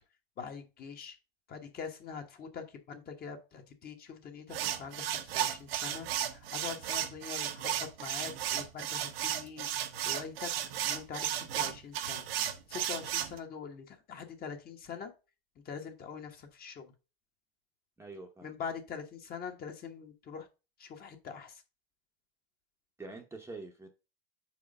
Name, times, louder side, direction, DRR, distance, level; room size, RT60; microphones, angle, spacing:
voice 1, 0.4-1.1 1.5-9.7 10.1-10.5 10.8-15.1 15.6-16.9 18.4-20.5 20.8-21.6, left 6 dB, 30° left, 5 dB, 1.2 m, -43 dB
sound 1, 4.5-13.4, right 11 dB, 75° right, 1.0 m, -34 dB
voice 2, 18.0-18.5 23.0-23.9, right 3 dB, 10° right, 2 dB, 0.8 m, -45 dB
4.8 x 4.5 x 5.3 m, 0.30 s
supercardioid pair, 120°, 30 cm